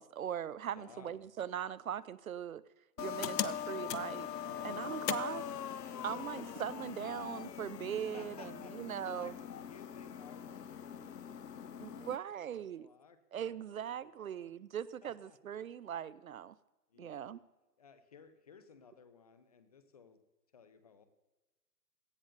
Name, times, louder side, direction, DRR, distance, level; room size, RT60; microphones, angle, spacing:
voice 1, 0.0-2.6 3.0-4.3 4.6-5.4 6.0-9.3 11.8-12.9 13.3-16.6 17.0-17.4, right 9 dB, 60° right, 20 dB, 0.5 m, -40 dB
voice 2, 0.7-1.2 4.4-5.5 5.9-6.6 7.3-7.4 8.1-8.8 9.1-13.9 14.2-14.6 15.0-15.4 16.9-17.4 17.8-20.2 20.5-21.1, left 6 dB, 25° left, 11 dB, 0.7 m, -57 dB
sound 1, 3.0-12.2, left 9 dB, 75° left, 0.8 m, -41 dB
18.0 x 13.0 x 2.6 m, 1.1 s
hypercardioid pair, 150°, 48 cm